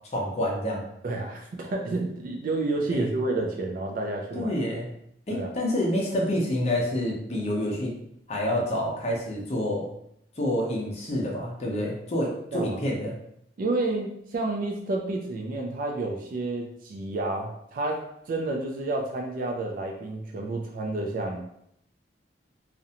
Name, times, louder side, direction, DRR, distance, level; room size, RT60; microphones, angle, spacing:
voice 1, 0.1-0.8 2.9-3.1 4.3-4.9 5.3-7.9 8.3-9.9 10.4-13.2, left 1 dB, 35° left, -1 dB, 0.6 m, -28 dB
voice 2, 1.0-4.5 5.3-5.5 12.5-12.8 13.6-21.4, right 2 dB, 50° right, 1 dB, 0.3 m, -30 dB
2.5 x 2.1 x 2.7 m, 0.74 s
head